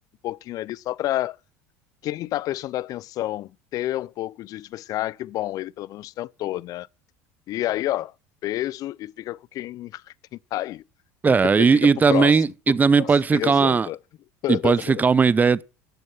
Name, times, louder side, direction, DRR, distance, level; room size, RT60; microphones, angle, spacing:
voice 1, 0.2-1.4 2.0-6.9 7.5-8.1 8.4-10.0 10.5-10.8 11.3-14.0 14.4-15.0, left 15 dB, 55° left, 0.6 m, -29 dB
voice 2, 11.2-13.9 14.5-15.6, right 5 dB, 20° right, 0.7 m, -18 dB
14.0 x 7.6 x 5.8 m
hypercardioid pair, 90°, 8 cm